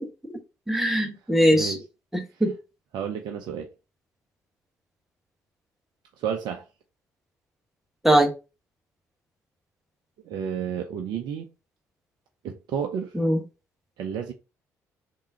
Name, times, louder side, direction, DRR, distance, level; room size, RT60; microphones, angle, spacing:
voice 1, 0.7-1.8 2.1-2.5 8.0-8.3 13.1-13.4, equal, 5° right, 1.1 m, -21 dB
voice 2, 1.5-1.8 2.9-3.7 6.2-6.6 10.2-11.5 12.4-13.1 14.0-14.3, right 8 dB, 60° right, 0.6 m, -31 dB
3.6 x 2.7 x 4.2 m
hypercardioid pair, 45°, 8 cm